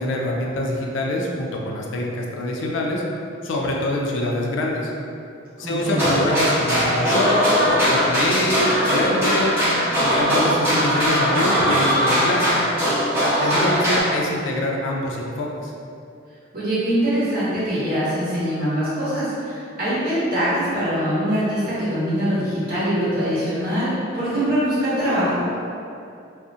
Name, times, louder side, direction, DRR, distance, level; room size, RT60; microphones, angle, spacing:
voice 1, 0.0-3.0 3.4-4.9 5.6-9.5 10.0-12.7 13.2-15.7, left 1 dB, 70° left, -1 dB, 0.3 m, -24 dB
voice 2, 5.6-6.1 13.4-13.7 16.5-25.4, equal, 45° right, -11 dB, 0.9 m, -23 dB
sound 1, 5.8-14.0, equal, 10° right, 0.7 m, -20 dB
2.4 x 2.1 x 2.6 m, 2.6 s
head